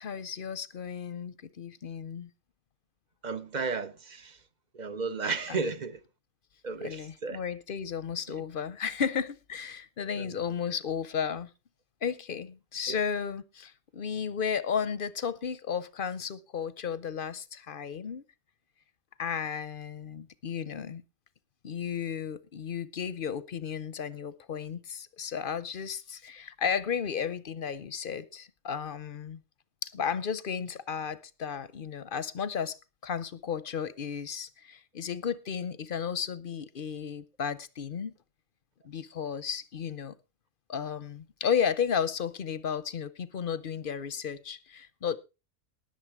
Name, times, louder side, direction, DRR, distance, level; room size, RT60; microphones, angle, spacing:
voice 1, 0.0-2.3 5.5-5.7 6.8-11.5 12.0-18.2 19.2-21.0 21.6-29.4 29.8-32.8 33.0-38.1 38.8-40.1 40.7-45.2, left 7 dB, 50° left, 0.8 m, -33 dB
voice 2, 3.2-4.4 4.7-6.0 6.6-7.4 10.2-10.3 12.9-13.0, right 4 dB, 40° right, 0.8 m, -33 dB
19.0 x 6.8 x 4.6 m
omnidirectional pair, 1.3 m